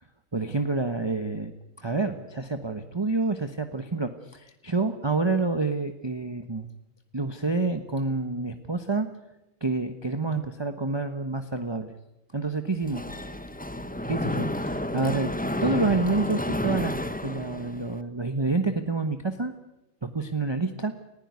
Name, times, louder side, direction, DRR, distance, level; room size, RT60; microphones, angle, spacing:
voice 1, 0.3-1.5 1.8-6.7 7.1-9.1 9.6-11.9 12.3-13.0 14.1-15.3 15.6-17.0 17.2-19.5 20.0-20.9, right 3 dB, 20° right, 7 dB, 1.1 m, -28 dB
Mechanisms, 12.8-18.0, left 1 dB, 5° left, 0.9 m, -31 dB
20.5 x 15.5 x 9.5 m, 0.93 s
omnidirectional pair, 1.4 m